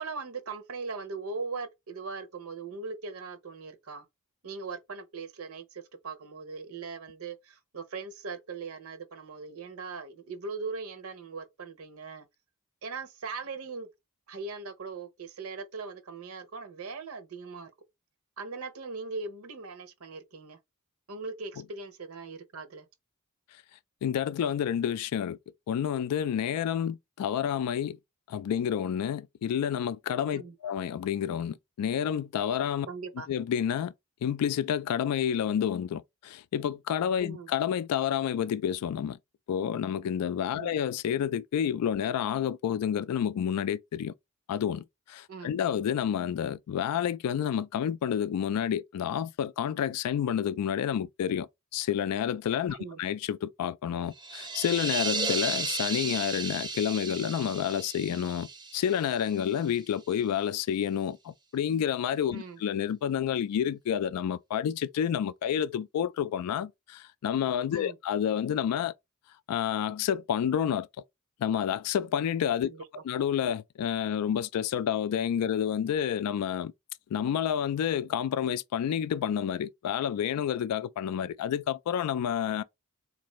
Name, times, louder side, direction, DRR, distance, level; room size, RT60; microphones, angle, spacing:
voice 1, 0.0-4.1 4.4-12.3 12.8-13.9 14.3-17.7 18.4-20.6 21.1-22.9 30.3-30.5 32.9-33.3 37.2-37.5 40.5-40.8 45.3-45.6 52.7-53.0 62.3-62.6 67.7-68.0 72.6-73.0, right 4 dB, 70° right, 0.8 m, -40 dB
voice 2, 24.0-25.4 25.7-28.0 28.3-32.9 33.3-33.9 34.2-39.2 39.5-44.1 44.5-68.9 69.5-70.9 71.4-72.7 73.1-76.7 77.1-82.6, left 9 dB, 90° left, 0.3 m, -29 dB
sound 1, 54.1-59.8, right 4 dB, 20° right, 0.5 m, -34 dB
3.8 x 2.6 x 3.0 m
head